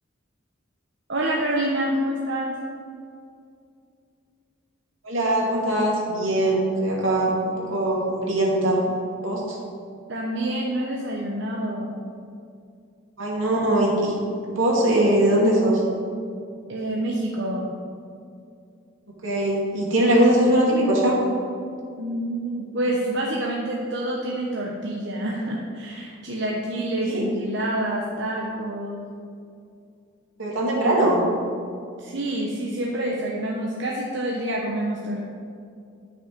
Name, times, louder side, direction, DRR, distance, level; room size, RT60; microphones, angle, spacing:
voice 1, 1.1-2.5 10.1-12.0 16.7-17.7 22.0-29.0 32.0-35.2, right 1 dB, 60° right, -2 dB, 1.0 m, -27 dB
voice 2, 5.0-8.8 9.2-9.6 13.2-14.1 14.5-15.8 19.2-21.2 27.0-27.3 30.4-31.2, right 1 dB, 80° right, -3 dB, 2.4 m, -21 dB
10.5 x 6.3 x 5.2 m, 2.4 s
head